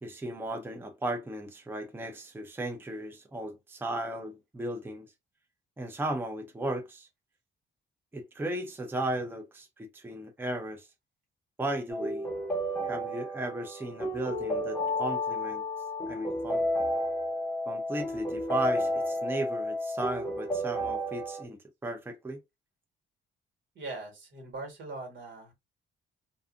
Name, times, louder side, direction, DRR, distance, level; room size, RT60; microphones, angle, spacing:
voice 1, 0.0-5.1 5.8-7.1 8.1-10.9 11.6-12.3 12.8-15.6 16.1-16.7 17.7-21.6 21.8-22.4, right 1 dB, 10° right, 0.5 m, -35 dB
sound 1, 11.9-21.4, left 1 dB, 10° left, 1.1 m, -31 dB
voice 2, 23.7-25.5, right 3 dB, 70° right, 1.5 m, -41 dB
2.5 x 2.4 x 2.5 m
cardioid pair, 90°, 20 cm